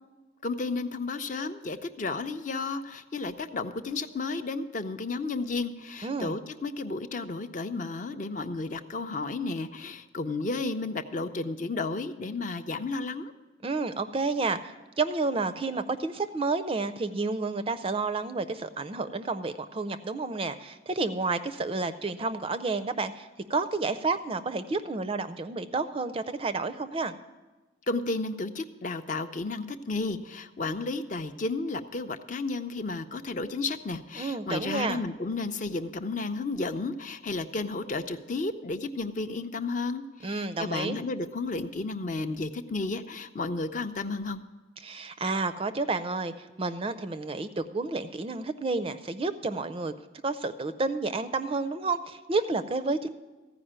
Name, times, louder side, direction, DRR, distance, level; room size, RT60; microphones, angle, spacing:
voice 1, 0.4-13.3 27.9-44.4, left 3 dB, 40° left, 9 dB, 0.5 m, -32 dB
voice 2, 6.0-6.4 13.6-27.1 34.2-35.0 40.2-41.0 44.8-49.9 50.2-53.1, right 3 dB, 25° right, 11 dB, 0.4 m, -30 dB
15.0 x 5.0 x 8.7 m, 1.2 s
head